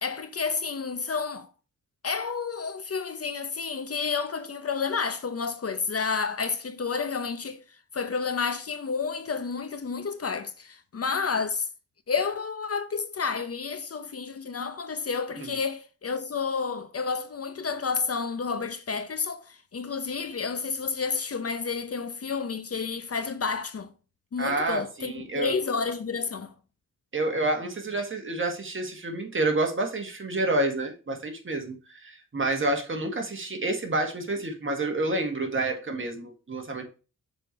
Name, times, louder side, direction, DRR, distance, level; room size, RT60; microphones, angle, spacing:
voice 1, 0.0-1.5 2.0-7.6 7.9-11.7 12.1-23.9 24.3-26.5, left 5 dB, 45° left, 0.7 m, -30 dB
voice 2, 24.4-25.6 27.1-36.8, right 2 dB, 40° right, 1.7 m, -29 dB
6.7 x 4.4 x 4.5 m
wide cardioid pair, 115°, 33 cm